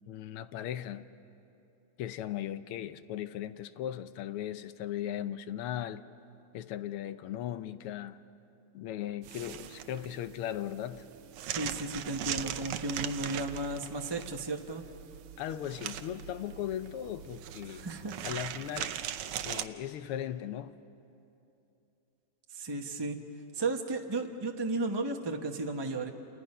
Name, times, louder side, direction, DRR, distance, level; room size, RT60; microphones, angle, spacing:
voice 1, 0.1-1.0 2.0-6.0 6.5-8.2 8.7-11.1 15.4-17.9 18.2-19.0 19.4-20.8, left 11 dB, 85° left, 1.7 m, -37 dB
sound 1, 9.2-19.6, right 10 dB, 85° right, 1.7 m, -40 dB
voice 2, 11.5-14.8 17.7-18.1 22.5-23.2 23.5-26.1, right 2 dB, 30° right, 0.4 m, -34 dB
29.0 x 29.0 x 5.5 m
omnidirectional pair, 2.4 m